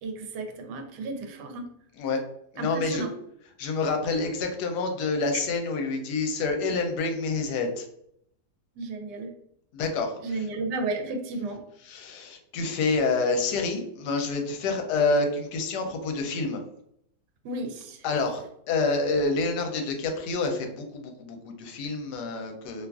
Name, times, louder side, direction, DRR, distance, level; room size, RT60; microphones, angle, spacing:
voice 1, 0.0-1.7 2.6-3.1 8.8-9.3 10.2-11.6 17.4-18.0, right 3 dB, 85° right, 4 dB, 1.2 m, -33 dB
voice 2, 2.5-3.1 3.6-7.9 9.7-10.5 11.8-16.6 18.0-22.9, left 3 dB, 80° left, 4 dB, 1.1 m, -28 dB
2.8 x 2.4 x 2.2 m, 0.72 s
omnidirectional pair, 1.7 m